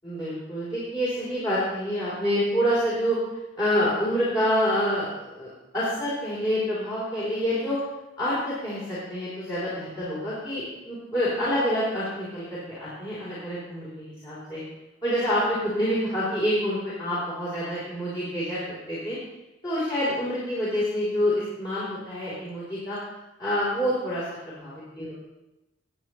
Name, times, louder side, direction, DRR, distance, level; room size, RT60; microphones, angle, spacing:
voice 1, 0.0-3.2 3.6-7.8 8.2-14.6 15.0-19.2 19.6-23.0 23.4-25.1, equal, 20° left, -10 dB, 3.5 m, -27 dB
19.0 x 8.4 x 3.1 m, 0.99 s
head